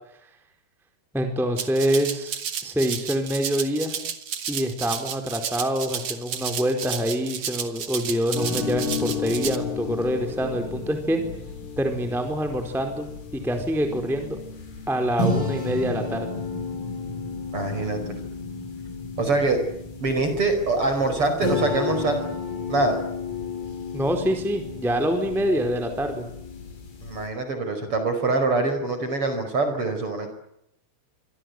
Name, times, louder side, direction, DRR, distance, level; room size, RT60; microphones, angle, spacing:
voice 1, 1.1-4.0 4.5-11.2 11.8-14.4 14.9-16.3 23.9-26.3, equal, ahead, 5 dB, 3.6 m, -26 dB
Rattle (instrument), 1.6-9.6, right 7 dB, 50° right, 1.9 m, -32 dB
sound 1, 8.3-27.3, left 4 dB, 80° left, 8.7 m, -32 dB
voice 2, 17.5-18.0 19.2-19.6 20.0-22.2 22.7-23.0 27.0-30.3, right 3 dB, 25° right, 8 dB, 5.3 m, -24 dB
26.0 x 26.0 x 8.1 m, 0.78 s
omnidirectional pair, 5.9 m